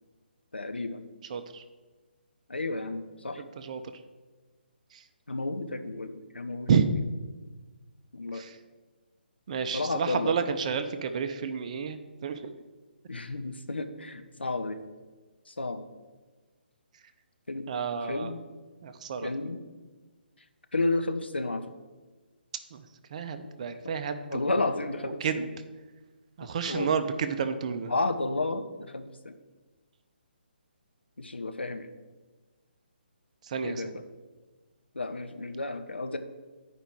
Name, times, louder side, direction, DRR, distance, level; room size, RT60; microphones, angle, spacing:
voice 1, 0.5-1.1 2.5-3.4 5.3-6.7 8.1-8.4 9.7-10.3 13.1-14.8 15.5-15.8 17.5-17.7 18.0-18.4 19.2-19.6 20.7-21.6 23.4-23.5 24.3-25.5 26.4-26.9 27.9-29.3 31.2-31.9 33.6-33.9 34.9-36.2, left 2 dB, 80° left, 8 dB, 0.8 m, -32 dB
voice 2, 1.3-1.6 3.6-3.8 6.7-6.9 8.3-8.5 9.5-12.5 17.7-18.3 18.8-19.3 22.7-22.8 23.1-24.4 25.2-25.5 26.4-27.9 33.5-34.0, right 6 dB, 40° right, 9 dB, 0.6 m, -30 dB
10.0 x 5.1 x 4.7 m, 1.3 s
figure-of-eight pair, 140°, 6 cm